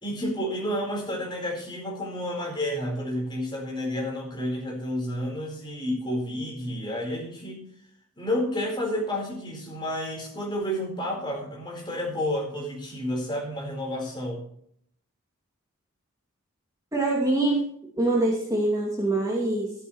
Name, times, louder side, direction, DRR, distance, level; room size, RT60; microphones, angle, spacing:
voice 1, 0.0-7.6 8.2-14.4, left 1 dB, 20° left, 0 dB, 4.4 m, -30 dB
voice 2, 16.9-17.7 18.0-19.7, right 2 dB, 15° right, -3 dB, 2.6 m, -24 dB
13.5 x 13.0 x 3.2 m, 0.65 s
head